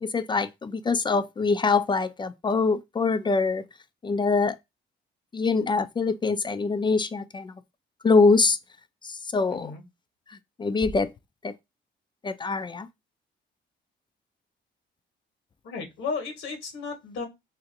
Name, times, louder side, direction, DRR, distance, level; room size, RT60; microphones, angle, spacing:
voice 1, 0.0-3.6 4.0-4.6 5.3-7.5 8.0-8.6 9.3-9.7 10.6-11.1 11.4-11.5 12.2-12.9, left 4 dB, 25° left, 0.4 m, -24 dB
voice 2, 9.5-9.8 15.6-17.2, left 4 dB, 80° left, 1.2 m, -34 dB
2.7 x 2.5 x 3.8 m
cardioid pair, 90°, 20 cm